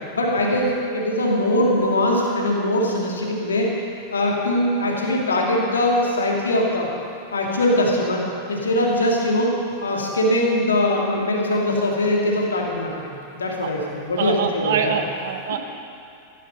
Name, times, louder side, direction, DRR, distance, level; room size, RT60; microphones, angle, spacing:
voice 1, 0.1-3.7 4.1-6.9 7.3-9.6 9.8-15.0 15.5-15.6, left 1 dB, 70° left, -2 dB, 2.6 m, -21 dB
voice 2, 14.2-15.6, right 7 dB, 60° right, 6 dB, 1.3 m, -24 dB
15.5 x 12.0 x 5.5 m, 2.5 s
figure-of-eight pair, 90°, 0 cm